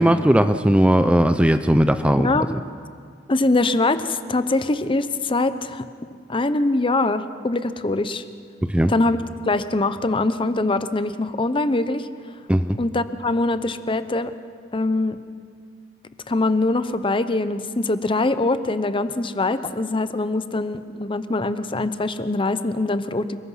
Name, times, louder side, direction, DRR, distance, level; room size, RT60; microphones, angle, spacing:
voice 1, 0.0-2.3 8.7-8.9 12.5-12.8, equal, 5° right, 9 dB, 0.5 m, -17 dB
voice 2, 2.2-2.5 3.3-5.8 6.3-8.2 8.9-9.2 9.4-12.1 12.8-14.3 14.7-15.2 16.3-23.4, left 2 dB, 25° left, 12 dB, 0.8 m, -23 dB
28.5 x 20.0 x 5.7 m, 2.1 s
head